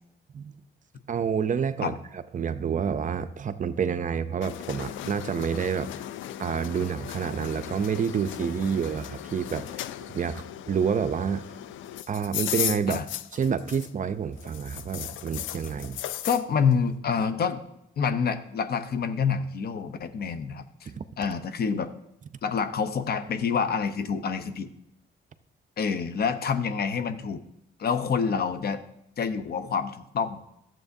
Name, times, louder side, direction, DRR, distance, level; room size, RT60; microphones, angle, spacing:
voice 1, 1.1-5.9 6.4-9.6 10.1-11.4 12.1-13.0 13.3-16.0 20.9-21.0, right 7 dB, 40° right, 12 dB, 0.5 m, -28 dB
sound 1, 4.4-14.1 14.4-16.5, left 12 dB, 80° left, 0.4 m, -36 dB
voice 2, 16.3-17.6 18.0-20.9 21.2-21.9 22.4-24.7 25.8-27.4 27.8-28.8 29.2-30.4, left 6 dB, 50° left, 10 dB, 0.7 m, -27 dB
12.5 x 7.5 x 2.7 m, 0.81 s
cardioid pair, 90°, 20 cm